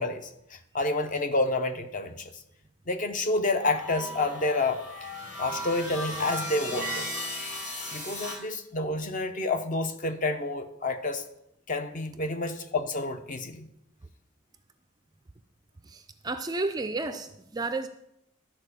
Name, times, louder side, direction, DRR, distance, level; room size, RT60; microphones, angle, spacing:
voice 1, 0.0-2.3 2.9-4.8 5.4-7.1 7.9-11.2 11.7-13.7, left 2 dB, 35° left, 0.7 m, -29 dB
sound 1, 3.6-8.4, left 1 dB, 85° left, 3.9 m, -36 dB
voice 2, 15.8-17.9, right 3 dB, 20° right, 0.4 m, -32 dB
12.5 x 4.4 x 6.8 m
head